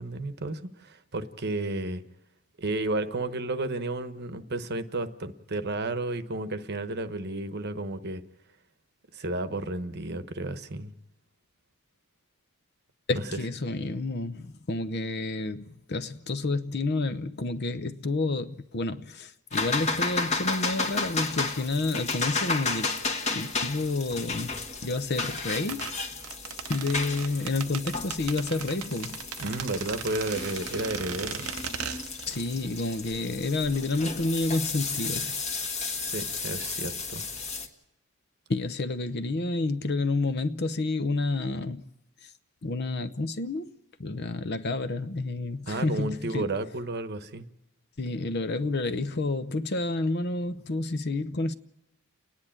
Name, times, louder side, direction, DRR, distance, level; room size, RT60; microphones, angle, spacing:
voice 1, 0.0-2.0 2.6-8.2 9.1-10.9 13.1-13.2 29.4-31.5 35.9-37.2 45.7-47.4, right 2 dB, 50° right, 1.0 m, -32 dB
voice 2, 13.1-23.0 23.3-24.5 24.8-25.9 26.7-29.2 32.3-35.4 38.5-41.8 42.6-43.7 44.0-46.5 48.0-51.5, left 2 dB, 50° left, 0.8 m, -29 dB
sound 1, 19.5-37.7, left 3 dB, 30° left, 1.5 m, -33 dB
sound 2, 25.3-32.5 32.7-32.8, right 9 dB, 85° right, 0.8 m, -38 dB
29.5 x 10.5 x 8.8 m
head